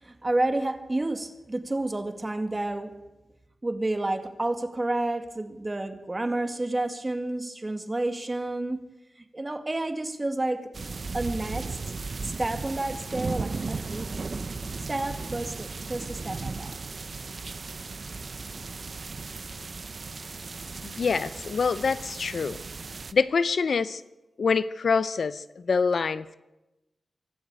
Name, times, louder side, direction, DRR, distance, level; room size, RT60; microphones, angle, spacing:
voice 1, 0.0-2.9 3.6-8.8 9.2-10.7 11.1-11.8 12.2-14.2 14.9-16.7, right 2 dB, 20° right, 7 dB, 1.9 m, -30 dB
sound 1, 10.7-23.1, right 4 dB, 45° right, 0.7 m, -36 dB
voice 2, 20.8-22.6 23.1-24.0 24.4-26.4, left 5 dB, 60° left, 14 dB, 0.7 m, -25 dB
24.0 x 12.0 x 8.9 m, 1.0 s
wide cardioid pair, 140°, 0 cm